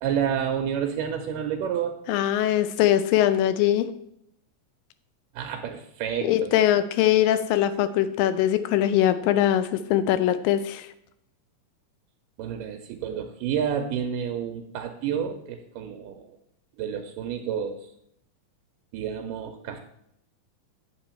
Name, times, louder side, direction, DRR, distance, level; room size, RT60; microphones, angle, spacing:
voice 1, 0.0-2.0 5.3-6.5 12.4-16.4 16.8-17.9 18.9-19.8, right 8 dB, 80° right, 5 dB, 2.2 m, -29 dB
voice 2, 2.1-3.9 6.2-10.9, left 12 dB, 85° left, 12 dB, 2.4 m, -22 dB
8.9 x 7.2 x 4.4 m, 0.75 s
omnidirectional pair, 3.9 m